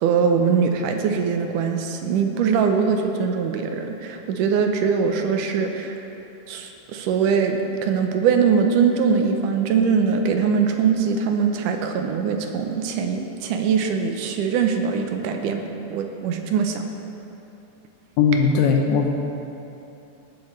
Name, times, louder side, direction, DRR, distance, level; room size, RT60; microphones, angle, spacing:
voice 1, 0.0-6.0 6.5-15.6 15.9-16.9, right 6 dB, 85° right, 4 dB, 2.3 m, -22 dB
voice 2, 18.2-19.1, left 5 dB, 75° left, 2 dB, 1.9 m, -18 dB
19.0 x 7.3 x 3.2 m, 2.9 s
omnidirectional pair, 3.7 m